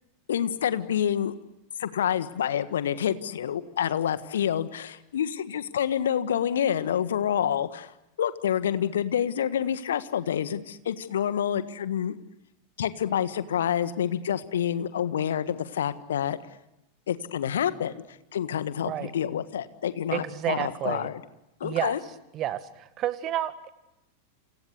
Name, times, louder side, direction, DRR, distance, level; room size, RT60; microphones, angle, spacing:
voice 1, 0.3-1.3 1.8-7.9 8.2-12.2 12.8-16.4 17.1-21.2 21.6-22.0, left 9 dB, 65° left, 13 dB, 1.5 m, -28 dB
voice 2, 20.1-21.1 21.6-22.0 22.3-23.7, right 12 dB, 35° right, 12 dB, 2.0 m, -30 dB
29.0 x 28.0 x 6.8 m, 0.91 s
figure-of-eight pair, 90°, 0 cm